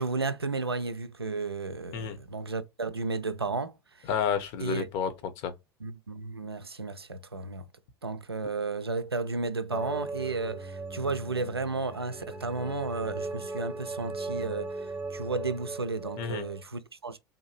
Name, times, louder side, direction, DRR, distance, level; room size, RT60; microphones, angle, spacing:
voice 1, 0.0-4.1 4.6-4.9 5.8-7.7 8.0-17.2, right 3 dB, 90° right, 0.4 m, -33 dB
voice 2, 4.0-5.5 16.2-16.5, left 7 dB, 50° left, 0.9 m, -31 dB
sound 1, 9.7-16.6, right 3 dB, 15° right, 0.7 m, -38 dB
3.6 x 2.7 x 2.9 m
figure-of-eight pair, 75°, 13 cm